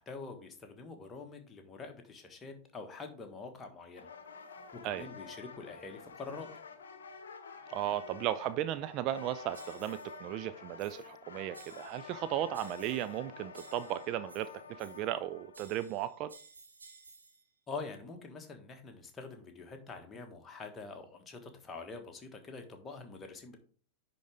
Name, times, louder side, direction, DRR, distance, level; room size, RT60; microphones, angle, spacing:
voice 1, 0.0-4.1 4.7-6.5 17.7-23.6, left 4 dB, 20° left, 1.4 m, -45 dB
sound 1, 4.0-15.7, left 5 dB, 65° left, 0.9 m, -49 dB
voice 2, 7.7-14.5 14.8-16.3, right 12 dB, 40° right, 0.4 m, -35 dB
sound 2, 9.5-10.2 10.8-11.2 11.5-12.2 12.5-13.2 13.5-15.2 15.5-17.4, right 4 dB, 75° right, 1.3 m, -56 dB
10.0 x 3.9 x 3.4 m
figure-of-eight pair, 90°, 0 cm